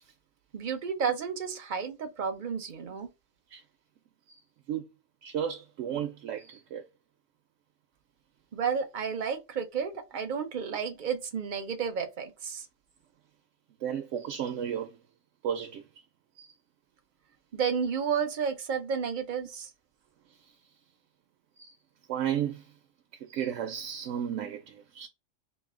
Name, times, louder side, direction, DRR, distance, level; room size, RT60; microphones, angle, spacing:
voice 1, 0.5-3.1 8.5-12.7 17.5-19.7, right 6 dB, 50° right, 0.7 m, -31 dB
voice 2, 5.2-6.8 13.8-15.0 15.4-15.8 16.4-16.5 21.6-21.7 22.1-22.6 23.3-25.1, right 9 dB, 80° right, 0.9 m, -33 dB
3.1 x 2.6 x 3.6 m
omnidirectional pair, 1.3 m